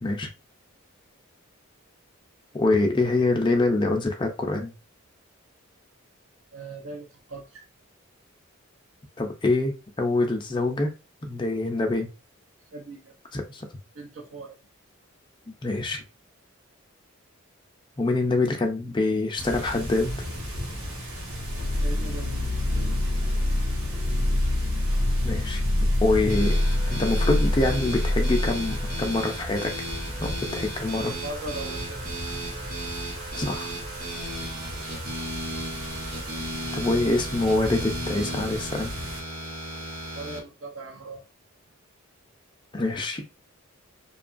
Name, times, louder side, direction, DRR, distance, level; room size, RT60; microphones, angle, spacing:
voice 1, 2.5-4.7 9.2-10.9 11.2-12.1 13.3-13.7 15.6-16.0 18.0-20.2 25.2-25.6 26.0-26.5 26.9-29.7 30.2-31.2 33.3-33.7 36.7-38.9 42.7-43.2, left 2 dB, 20° left, 3 dB, 0.4 m, -25 dB
voice 2, 6.5-7.6 12.7-13.1 13.9-14.6 21.8-22.5 31.2-32.0 40.2-41.2, right 2 dB, 70° right, -1 dB, 0.6 m, -39 dB
sound 1, 19.4-39.2, equal, 85° right, 1.0 m, -36 dB
sound 2, 21.3-29.1, left 1 dB, 85° left, 0.5 m, -25 dB
sound 3, 26.3-40.4, equal, 50° right, 1.0 m, -35 dB
2.8 x 2.3 x 2.4 m, 0.29 s
head